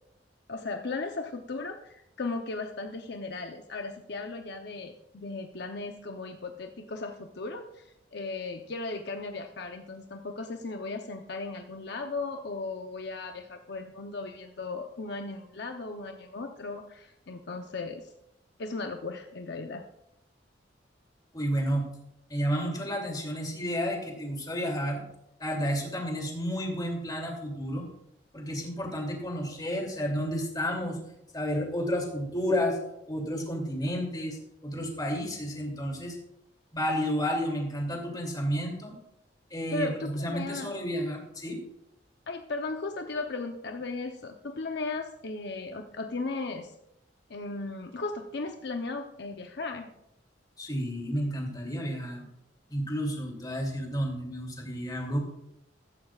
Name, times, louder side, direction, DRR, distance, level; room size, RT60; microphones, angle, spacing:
voice 1, 0.5-18.1 18.6-19.8 39.7-40.7 42.3-46.7 47.3-49.9, left 3 dB, 65° left, 4 dB, 0.8 m, -36 dB
voice 2, 21.3-21.8 22.3-25.0 25.4-27.9 28.3-31.0 31.3-32.8 33.1-36.2 36.7-38.9 39.5-41.6 50.6-52.2 52.7-55.2, equal, 20° left, 0 dB, 2.8 m, -31 dB
14.5 x 13.5 x 2.4 m, 0.81 s
head